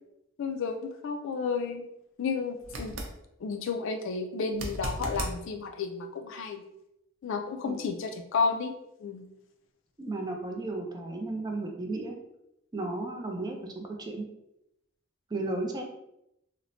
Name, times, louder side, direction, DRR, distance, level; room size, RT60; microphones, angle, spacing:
voice 1, 0.4-1.8 2.2-3.0 3.4-6.6 7.2-8.7 9.0-9.3 13.5-13.6, left 5 dB, 65° left, 5 dB, 0.3 m, -32 dB
sound 1, 2.6-3.2 4.5-5.4 8.4-8.5, right 1 dB, 80° right, 0.5 m, -35 dB
voice 2, 10.0-12.2 12.7-14.3 15.3-15.8, right 2 dB, 20° right, 2 dB, 0.4 m, -34 dB
3.0 x 2.0 x 2.6 m, 0.82 s
head